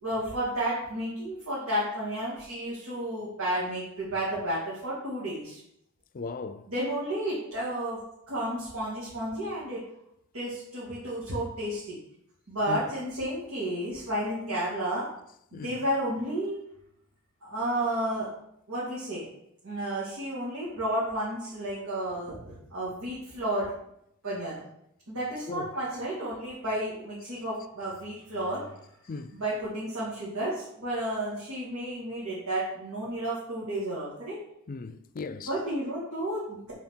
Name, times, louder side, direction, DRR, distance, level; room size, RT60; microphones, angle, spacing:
voice 1, 0.0-5.6 6.7-9.9 10.3-12.0 12.5-15.1 15.5-16.6 17.4-18.3 18.7-19.3 19.6-23.7 24.2-24.6 25.1-28.7 29.3-34.4 35.5-36.7, right 1 dB, 90° right, 2.4 m, -32 dB
voice 2, 6.1-6.7 12.7-12.8 15.5-15.9 25.5-25.7 29.1-29.4 34.7-35.5, left 3 dB, 40° left, 0.5 m, -37 dB
5.8 x 4.6 x 6.3 m
head